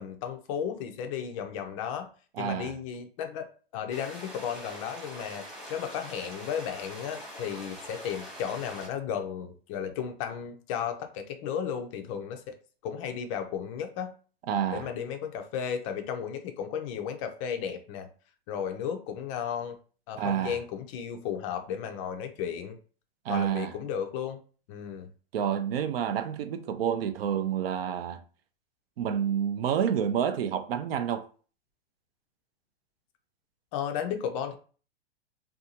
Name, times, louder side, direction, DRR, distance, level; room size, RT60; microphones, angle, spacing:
voice 1, 0.0-2.1 2.4-3.5 3.7-5.4 5.7-12.5 12.8-14.1 14.7-18.1 18.5-19.8 20.1-22.8 23.3-24.4 24.7-25.1 33.7-34.5, left 8 dB, 35° left, 0.4 m, -34 dB
voice 2, 2.4-2.7 14.5-14.9 20.2-20.6 23.2-23.7 25.3-28.2 29.0-31.3, right 8 dB, 65° right, 0.5 m, -29 dB
sound 1, 3.9-8.9, equal, ahead, 0.9 m, -44 dB
2.6 x 2.3 x 2.7 m
hypercardioid pair, 115°, 31 cm